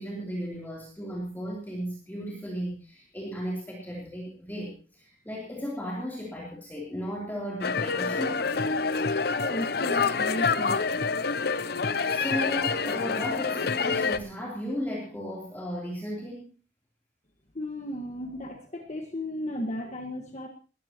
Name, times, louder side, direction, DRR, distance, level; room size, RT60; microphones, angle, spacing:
voice 1, 0.0-8.4 12.1-16.5, equal, 10° left, -4 dB, 3.4 m, -35 dB
sound 1, 7.6-14.2, left 4 dB, 60° left, 0.7 m, -27 dB
voice 2, 9.3-10.8 17.5-20.5, left 1 dB, 40° left, 3 dB, 1.6 m, -34 dB
20.5 x 14.5 x 3.0 m, 0.36 s
head